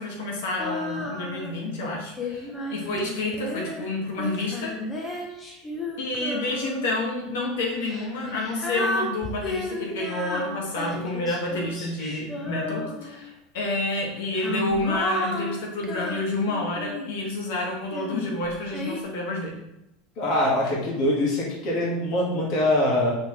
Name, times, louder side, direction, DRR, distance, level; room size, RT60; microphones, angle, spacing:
voice 1, 0.0-4.7 6.0-19.5, left 2 dB, 80° left, -2 dB, 1.7 m, -29 dB
Female singing, 0.6-1.6 2.2-7.0 7.8-13.3 14.1-17.2 17.9-19.0, left 1 dB, 15° left, 0.8 m, -33 dB
voice 2, 20.2-23.2, left 1 dB, 40° left, -4 dB, 1.7 m, -23 dB
5.9 x 5.5 x 3.2 m, 0.88 s
supercardioid pair, 175°, 0 cm